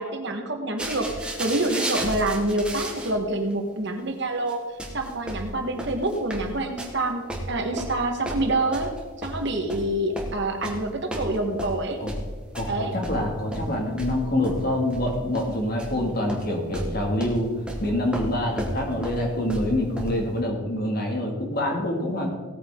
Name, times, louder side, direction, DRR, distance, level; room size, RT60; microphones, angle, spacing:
voice 1, 0.0-8.9 9.2-12.0 12.6-12.9, right 2 dB, 55° right, 4 dB, 1.6 m, -27 dB
sound 1, 0.8-3.2 3.5-3.6 4.5-4.6 4.8-7.0 7.3-9.9 10.2-10.9 11.1-12.8 13.0-16.0 16.3-16.5 16.7-20.3, right 1 dB, 5° right, 1.5 m, -33 dB
voice 2, 12.5-17.5 17.8-22.3, left 1 dB, 45° left, 1 dB, 2.4 m, -26 dB
17.5 x 9.1 x 3.8 m, 1.5 s
head